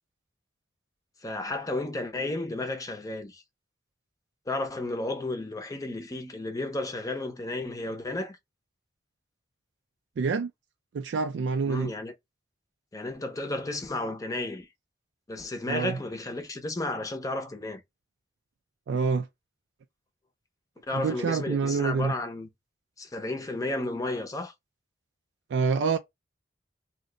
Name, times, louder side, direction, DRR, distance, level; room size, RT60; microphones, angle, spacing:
voice 1, 1.2-3.4 4.5-8.4 11.6-12.1 12.9-14.7 15.3-17.8 20.9-22.5 23.0-24.5, left 2 dB, 20° left, 0.6 m, -33 dB
voice 2, 10.2-10.5 10.9-11.9 15.7-16.0 18.9-19.3 20.9-22.1 25.5-26.0, right 5 dB, 85° right, 0.3 m, -27 dB
2.6 x 2.2 x 3.7 m
head